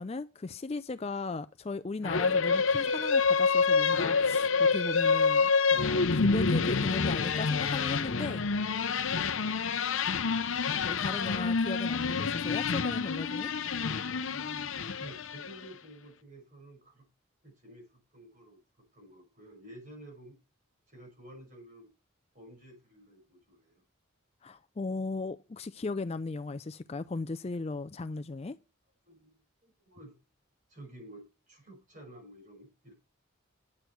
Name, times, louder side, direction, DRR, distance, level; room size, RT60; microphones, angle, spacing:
voice 1, 0.0-8.5 10.8-13.5 24.4-28.6, left 3 dB, 30° left, 0.4 m, -37 dB
sound 1, 2.0-15.7, left 5 dB, 70° left, 0.7 m, -27 dB
voice 2, 9.1-9.5 14.3-17.1 17.4-20.4 20.9-21.9 22.3-23.8 28.1-28.2 29.1-30.2 30.7-32.9, right 1 dB, 35° right, 5.8 m, -52 dB
9.8 x 8.2 x 4.5 m
head